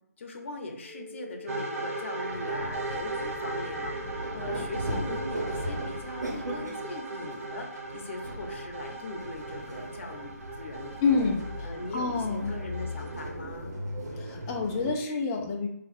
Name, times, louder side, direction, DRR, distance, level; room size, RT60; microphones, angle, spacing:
voice 1, 0.2-10.3 10.6-11.3 11.6-13.8, left 2 dB, 45° left, 2 dB, 0.7 m, -40 dB
sound 1, 0.8-5.8, left 3 dB, 35° right, 1.2 m, -45 dB
sound 2, 1.5-13.2, right 3 dB, 55° right, 0.8 m, -38 dB
sound 3, 2.2-14.9, equal, 85° right, 1.1 m, -38 dB
voice 2, 11.0-12.5 14.2-15.7, left 4 dB, 15° left, 0 dB, 0.3 m, -28 dB
2.9 x 2.4 x 4.1 m, 0.79 s
hypercardioid pair, 160°, 9 cm